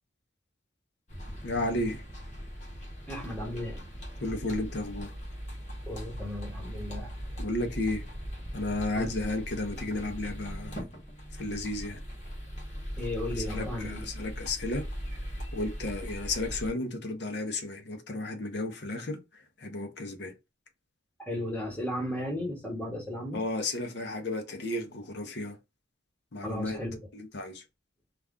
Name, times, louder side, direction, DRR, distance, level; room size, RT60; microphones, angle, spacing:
sound 1, 1.1-16.7, equal, 40° left, 0.9 m, -39 dB
voice 1, 1.4-2.0 4.2-5.1 7.4-8.0 8.5-10.9 11.4-12.0 13.4-14.9 15.5-20.3 23.3-25.6 26.3-26.8 27.1-27.6, left 2 dB, 60° left, 0.7 m, -33 dB
voice 2, 3.1-3.8 5.9-7.1 9.0-9.1 13.0-14.1 21.3-23.4 26.4-27.1, left 1 dB, 10° left, 0.9 m, -35 dB
2.4 x 2.3 x 3.5 m
head